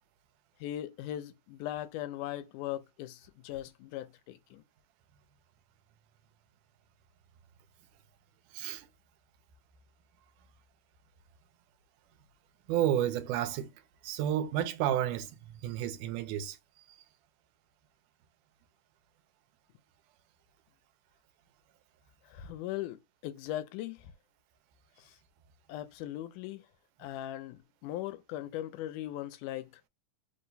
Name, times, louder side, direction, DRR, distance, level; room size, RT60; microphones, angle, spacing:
voice 1, 0.6-4.6 22.3-24.1 25.1-25.2 25.7-26.7 27.0-29.8, left 13 dB, 85° left, 2.0 m, -39 dB
voice 2, 8.5-8.9 12.7-13.7 14.0-16.6, right 11 dB, 85° right, 2.2 m, -31 dB
4.9 x 2.2 x 3.9 m
omnidirectional pair, 3.6 m